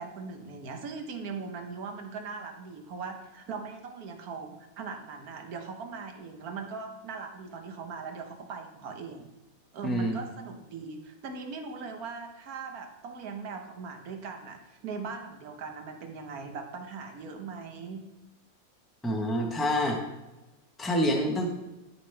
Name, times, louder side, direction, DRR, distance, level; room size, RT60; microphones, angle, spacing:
voice 1, 0.0-9.3 9.7-18.1, right 5 dB, 65° right, 4 dB, 1.4 m, -40 dB
voice 2, 9.8-10.1 19.0-20.0 20.8-21.5, equal, ahead, 0 dB, 0.7 m, -27 dB
12.5 x 5.2 x 3.4 m, 1.0 s
omnidirectional pair, 1.8 m